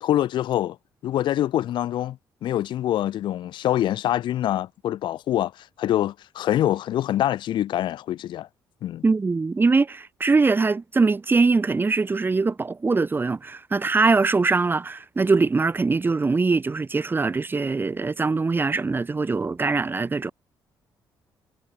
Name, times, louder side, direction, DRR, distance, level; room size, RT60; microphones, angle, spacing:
voice 1, 0.0-0.8 1.0-8.5 8.8-9.0, left 12 dB, 65° left, 0.4 m, -25 dB
voice 2, 9.0-20.3, right 4 dB, 25° right, 0.8 m, -22 dB
cardioid pair, 80°, 8 cm